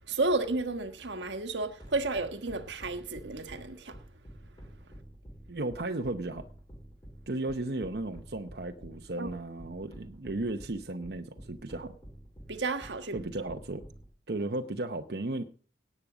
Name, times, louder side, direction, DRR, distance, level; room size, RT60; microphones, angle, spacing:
voice 1, 0.1-4.0 9.2-9.3 12.5-13.1, right 3 dB, 85° right, 1.4 m, -32 dB
sound 1, 1.8-14.0, equal, 25° left, 3.6 m, -49 dB
voice 2, 5.5-6.5 7.3-11.9 13.1-13.8 14.3-15.4, right 2 dB, 65° right, 0.9 m, -35 dB
17.5 x 8.6 x 5.0 m
head